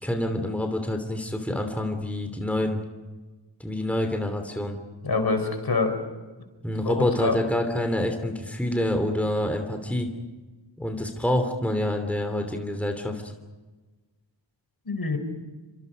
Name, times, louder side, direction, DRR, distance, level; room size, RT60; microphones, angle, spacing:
voice 1, 0.0-2.8 3.6-4.8 6.6-10.1 10.8-13.2, left 1 dB, 5° left, 5 dB, 3.0 m, -27 dB
voice 2, 5.0-6.0 6.8-7.4 14.8-15.2, left 3 dB, 55° left, 6 dB, 4.9 m, -25 dB
29.5 x 26.0 x 5.4 m, 1.2 s
wide cardioid pair, 110°, 45 cm